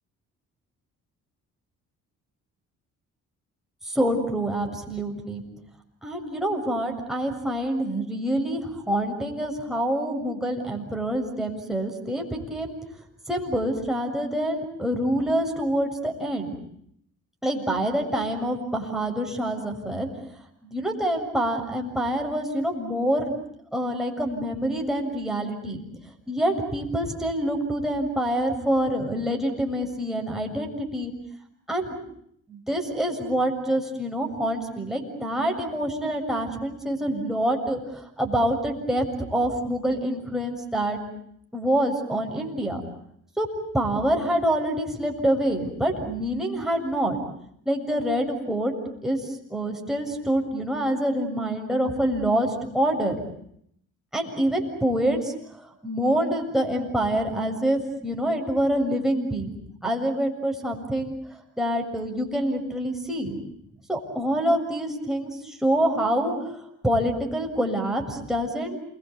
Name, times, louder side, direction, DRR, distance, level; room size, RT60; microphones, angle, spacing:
voice 1, 3.8-5.4 6.0-12.8 13.3-16.5 17.4-20.1 20.6-23.4 23.7-25.8 26.3-31.1 31.7-32.0 32.5-39.0 39.3-41.0 41.5-42.8 43.4-43.5 43.7-47.2 47.7-48.7 49.0-49.2 49.5-53.2 54.1-59.5 59.8-61.2 61.6-63.4 63.9-66.6 66.8-68.8, right 1 dB, ahead, 1 dB, 7.1 m, -26 dB
29.0 x 23.0 x 8.5 m, 0.71 s
cardioid pair, 90°, 30 cm